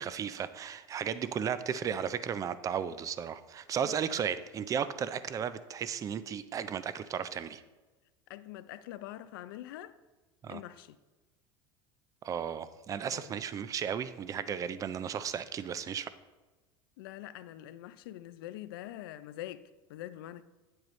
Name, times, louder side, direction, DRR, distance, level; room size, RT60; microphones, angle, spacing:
voice 1, 0.0-7.6 10.4-10.6 12.2-16.1, right 8 dB, 30° right, 0.5 m, -35 dB
voice 2, 8.3-9.9 10.5-11.0 13.1-13.3 17.0-20.4, left 14 dB, 80° left, 0.5 m, -44 dB
8.8 x 7.8 x 3.1 m
supercardioid pair, 110°, 12 cm